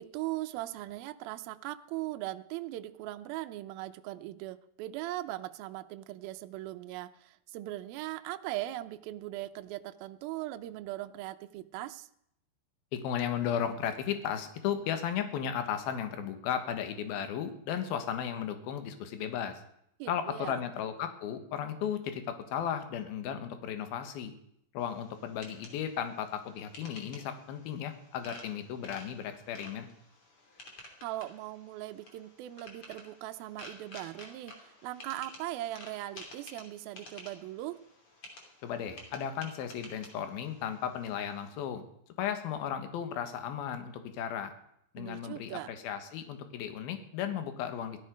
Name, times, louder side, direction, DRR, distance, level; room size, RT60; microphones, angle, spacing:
voice 1, 0.0-12.1 20.0-20.6 31.0-37.8 45.0-45.7, right 15 dB, 80° right, 8 dB, 2.2 m, -39 dB
voice 2, 12.9-19.6 20.1-24.3 24.7-29.9 38.6-41.8 42.2-44.5 44.9-48.0, left 9 dB, 65° left, 8 dB, 3.0 m, -35 dB
sound 1, 24.8-41.5, left 2 dB, 35° left, 3.1 m, -52 dB
17.0 x 12.5 x 5.2 m, 0.73 s
omnidirectional pair, 5.1 m